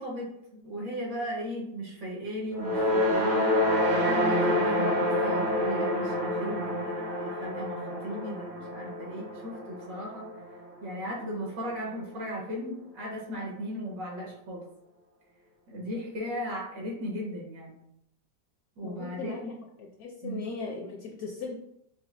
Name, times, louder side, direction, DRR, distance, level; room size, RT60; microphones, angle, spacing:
voice 1, 0.0-3.6 3.9-10.3 10.8-14.7 15.7-17.7 18.8-19.5 20.2-20.5, equal, 75° right, -3 dB, 2.0 m, -36 dB
sound 1, 2.5-10.9, left 1 dB, 55° right, 0.5 m, -28 dB
voice 2, 18.8-19.4 19.8-21.5, left 4 dB, 75° left, 0 dB, 0.8 m, -38 dB
5.0 x 3.0 x 2.5 m, 0.79 s
omnidirectional pair, 2.0 m